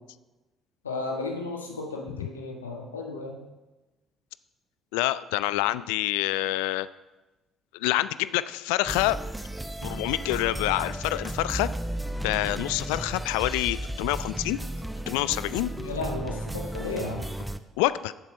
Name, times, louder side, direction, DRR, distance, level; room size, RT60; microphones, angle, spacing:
voice 1, 0.8-3.4 15.8-17.2, left 3 dB, 85° left, 2 dB, 1.4 m, -34 dB
voice 2, 4.9-6.9 7.7-9.2 9.8-11.7 12.2-14.6 15.1-15.7 17.8-18.1, left 17 dB, 70° left, 16 dB, 0.3 m, -27 dB
sound 1, 8.9-17.6, right 1 dB, 5° right, 0.7 m, -34 dB
12.0 x 7.5 x 5.3 m, 1.1 s
figure-of-eight pair, 50°, 0 cm